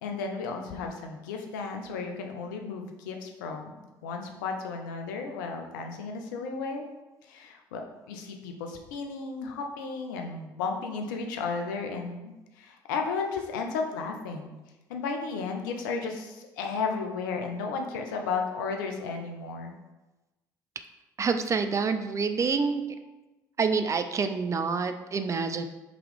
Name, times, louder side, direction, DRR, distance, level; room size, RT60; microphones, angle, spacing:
voice 1, 0.0-3.7 4.0-6.9 7.2-14.6 14.9-19.7, left 4 dB, 75° left, 3 dB, 0.5 m, -34 dB
voice 2, 21.2-22.9 23.6-25.6, right 5 dB, 30° right, 8 dB, 0.3 m, -27 dB
3.7 x 2.9 x 3.3 m, 1.1 s
hypercardioid pair, 55°, 11 cm